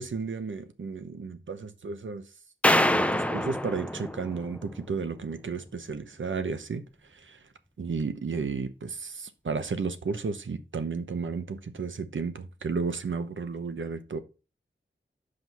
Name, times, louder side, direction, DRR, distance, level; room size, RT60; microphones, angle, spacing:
voice 1, 0.0-2.2 2.7-6.8 7.2-7.4 7.8-14.2, right 5 dB, 80° right, 0.9 m, -33 dB
sound 1, 2.6-5.0, left 1 dB, 5° left, 0.6 m, -26 dB
6.0 x 5.2 x 5.5 m
wide cardioid pair, 60°, 20 cm